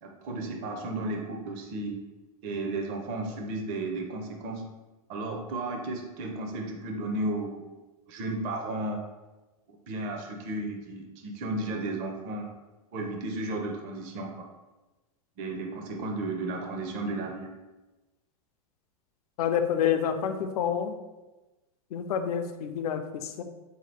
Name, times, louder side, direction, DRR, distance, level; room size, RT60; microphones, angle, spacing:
voice 1, 0.0-2.0 2.4-4.6 5.1-7.6 8.1-9.0 9.9-12.5 12.9-14.5 15.4-17.5, right 2 dB, 40° right, 2 dB, 0.6 m, -33 dB
voice 2, 19.4-20.9 21.9-23.4, left 8 dB, 75° left, 8 dB, 0.5 m, -28 dB
3.7 x 2.8 x 3.2 m, 1.1 s
supercardioid pair, 140°, 19 cm